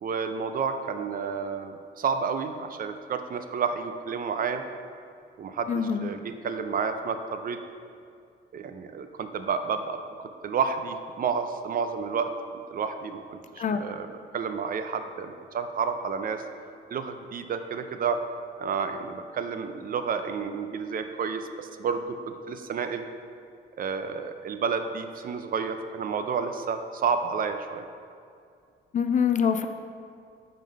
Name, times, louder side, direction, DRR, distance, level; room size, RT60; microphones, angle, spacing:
voice 1, 0.0-4.7 5.4-7.6 8.5-10.0 10.4-14.1 14.3-16.4 16.9-18.2 18.6-23.0 23.8-27.9, right 6 dB, 45° right, 8 dB, 0.4 m, -30 dB
voice 2, 5.7-6.1 13.6-13.8 28.9-29.7, left 7 dB, 40° left, 8 dB, 0.4 m, -24 dB
5.2 x 3.8 x 5.3 m, 2.4 s
cardioid pair, 90°, 20 cm